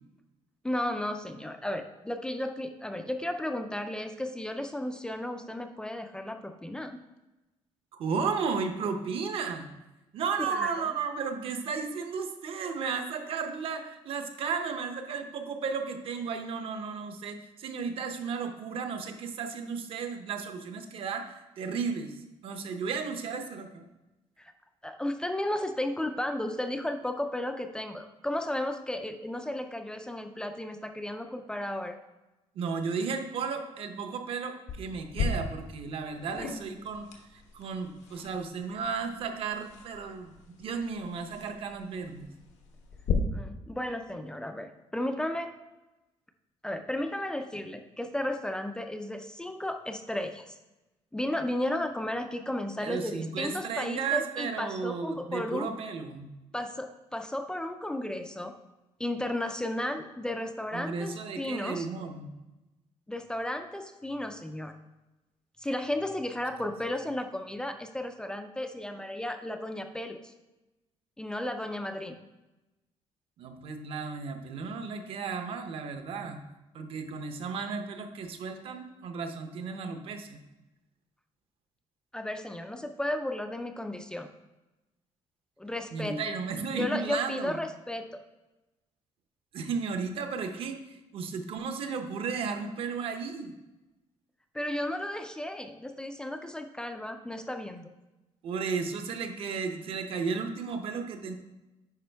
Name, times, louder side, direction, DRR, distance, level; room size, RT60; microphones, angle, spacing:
voice 1, 0.6-7.0 10.5-10.9 24.4-24.5 24.8-32.0 36.4-36.6 43.3-45.5 46.6-50.6 51.1-55.7 56.5-58.5 59.0-61.9 63.1-64.7 65.6-70.3 71.2-72.2 82.1-84.3 85.6-86.2 86.7-88.2 94.5-97.9, left 1 dB, 5° left, 6 dB, 0.4 m, -34 dB
voice 2, 8.0-9.7 10.1-22.1 22.4-23.8 32.5-37.1 37.5-40.3 40.6-42.3 52.8-56.3 60.7-62.3 73.4-76.4 76.7-80.4 85.9-87.6 89.5-90.8 91.1-93.5 98.4-101.3, right 5 dB, 50° right, 6 dB, 0.8 m, -34 dB
sound 1, 34.7-43.1, left 5 dB, 85° left, 1.2 m, -38 dB
9.4 x 5.2 x 3.4 m, 1.0 s
cardioid pair, 175°, 12 cm